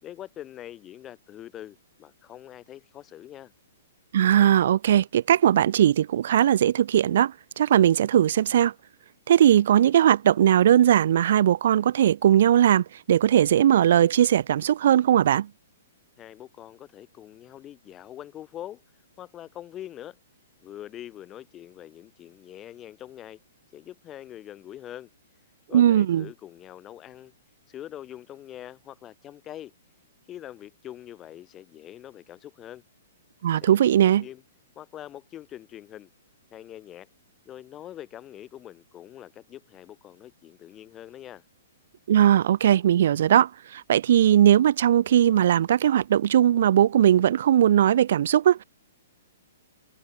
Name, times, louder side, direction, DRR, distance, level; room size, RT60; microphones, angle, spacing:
voice 1, 0.0-3.5 16.2-18.8 19.2-20.2 20.6-23.4 23.7-25.1 25.7-27.3 27.7-29.7 30.3-32.8 33.5-34.4 34.7-36.1 36.5-37.1 37.4-41.4, left 12 dB, 15° left, 1.5 m, -43 dB
voice 2, 4.1-8.7 9.3-15.5 25.7-26.3 33.4-34.2 42.1-48.6, right 10 dB, 50° right, 0.4 m, -19 dB
hypercardioid pair, 170°, 0 cm